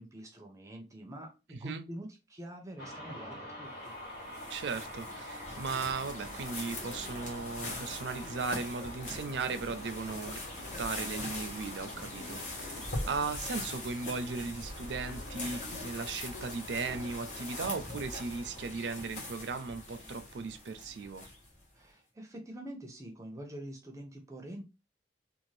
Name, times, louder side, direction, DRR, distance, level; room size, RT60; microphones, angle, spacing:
voice 1, 0.0-3.9 21.7-24.6, right 1 dB, 20° right, 0.5 m, -46 dB
sound 1, 2.8-18.7, equal, 80° left, 1.3 m, -48 dB
sound 2, 3.8-21.6, left 2 dB, 45° left, 0.9 m, -42 dB
voice 2, 4.5-10.4 10.8-12.8 13.0-21.3, right 4 dB, 80° right, 0.4 m, -37 dB
sound 3, 7.6-10.4 10.7-13.3 13.8-13.9 14.5-14.6 15.0-16.6, left 2 dB, 60° left, 0.4 m, -52 dB
2.5 x 2.4 x 3.2 m
head